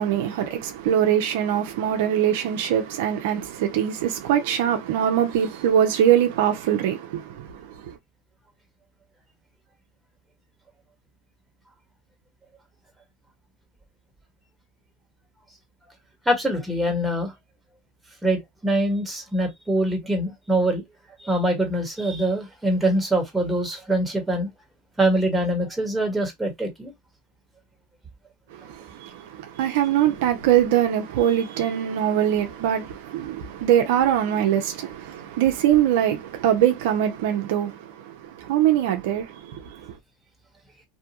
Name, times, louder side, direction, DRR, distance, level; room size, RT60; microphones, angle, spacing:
voice 1, 0.0-8.0 28.5-40.0, right 10 dB, 75° right, 0.5 m, -23 dB
voice 2, 16.2-17.3 18.2-20.8 21.2-24.5 25.0-26.9, right 1 dB, 10° right, 1.2 m, -24 dB
2.7 x 2.2 x 2.9 m
hypercardioid pair, 95°, 0 cm